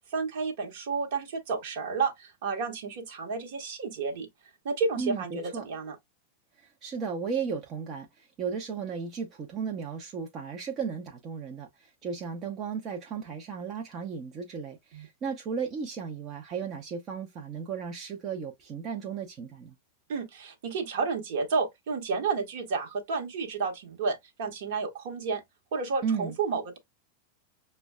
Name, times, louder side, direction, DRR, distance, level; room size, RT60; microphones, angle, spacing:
voice 1, 0.1-4.3 4.6-5.9 14.9-15.1 20.1-25.4 25.7-26.8, right 4 dB, 55° right, 1.0 m, -31 dB
voice 2, 5.0-5.7 6.8-19.7 26.0-26.3, right 6 dB, 30° right, 0.6 m, -35 dB
5.9 x 2.2 x 2.2 m
figure-of-eight pair, 90°, 0 cm